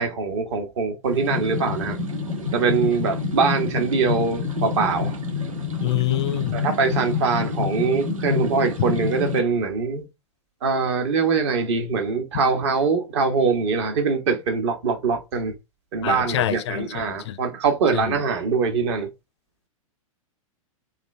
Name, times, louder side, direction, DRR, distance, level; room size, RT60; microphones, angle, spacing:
voice 1, 0.0-2.0 2.5-5.2 6.5-10.0 10.6-15.5 15.9-19.1, right 5 dB, 50° right, 1.1 m, -23 dB
sound 1, 1.0-9.4, left 5 dB, 70° right, 1.3 m, -27 dB
voice 2, 5.8-6.6 16.0-17.4 17.9-18.0, left 13 dB, 50° left, 0.5 m, -25 dB
3.5 x 2.5 x 4.2 m
figure-of-eight pair, 105°, 18 cm